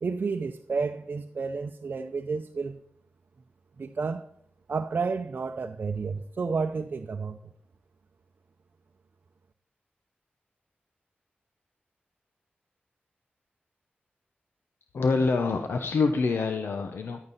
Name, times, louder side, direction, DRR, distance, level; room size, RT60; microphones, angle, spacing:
voice 1, 0.0-2.8 3.8-4.3 4.7-7.4, right 4 dB, 60° right, 0.6 m, -31 dB
voice 2, 14.9-17.2, left 4 dB, 90° left, 0.8 m, -26 dB
14.5 x 11.0 x 4.1 m
wide cardioid pair, 100°, 4 cm